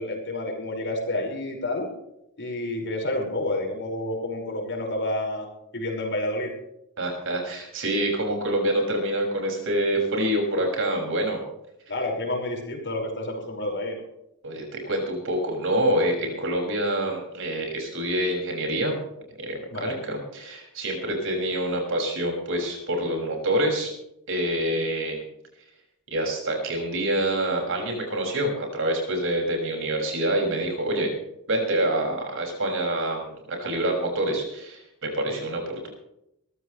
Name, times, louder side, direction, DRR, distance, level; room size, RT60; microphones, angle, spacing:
voice 1, 0.0-1.9 2.4-5.5 5.7-6.5 11.9-14.0 19.7-20.0, left 1 dB, 55° left, 1 dB, 5.5 m, -29 dB
voice 2, 7.0-11.4 14.4-19.0 19.4-23.9 24.3-25.2 26.1-31.1 31.5-35.9, right 1 dB, 60° right, 2 dB, 6.3 m, -26 dB
23.0 x 15.0 x 3.3 m, 0.80 s
head